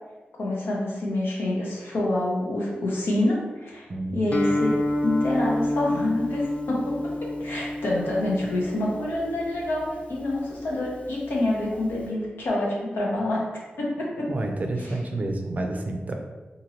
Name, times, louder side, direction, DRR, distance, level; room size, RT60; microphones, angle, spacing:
voice 1, 0.4-3.9 4.1-4.7 5.0-6.9 7.4-13.4 13.8-14.3 14.8-14.9, left 1 dB, 90° left, -4 dB, 0.8 m, -27 dB
voice 2, 3.9-4.3 14.3-16.2, right 2 dB, 45° right, 3 dB, 0.4 m, -29 dB
Guitar, 4.3-12.1, left 1 dB, 35° left, 0.4 m, -30 dB
2.9 x 2.6 x 2.9 m, 1.2 s
wide cardioid pair, 105°, 4 cm